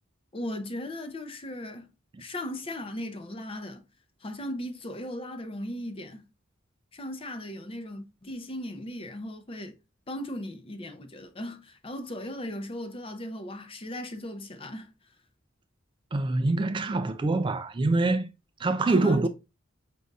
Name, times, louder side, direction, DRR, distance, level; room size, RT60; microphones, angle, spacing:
voice 1, 0.3-1.9 2.2-3.8 4.2-6.2 6.9-9.8 10.1-14.9 18.9-19.3, left 1 dB, 30° left, 0.6 m, -37 dB
voice 2, 16.1-18.3 18.6-19.3, right 2 dB, 25° right, 0.3 m, -25 dB
5.2 x 2.6 x 3.4 m
head